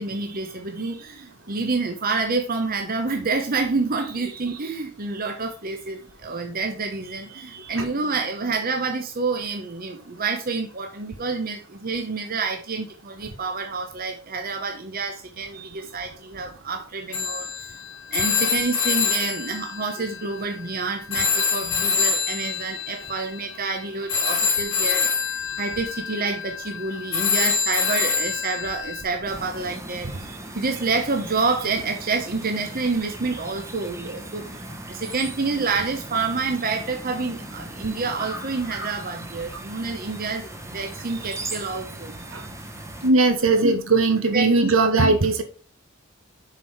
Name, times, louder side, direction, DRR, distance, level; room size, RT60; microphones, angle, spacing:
voice 1, 0.0-17.7 18.1-42.1 43.6-43.8 44.3-45.2, right 4 dB, 45° right, 0.9 m, -28 dB
Telephone, 17.1-20.8 21.1-29.0, left 5 dB, 90° left, 2.0 m, -26 dB
sound 1, 29.3-43.1, right 1 dB, 15° right, 1.1 m, -38 dB
voice 2, 43.0-45.4, right 3 dB, 70° right, 1.3 m, -19 dB
7.0 x 4.5 x 4.7 m
head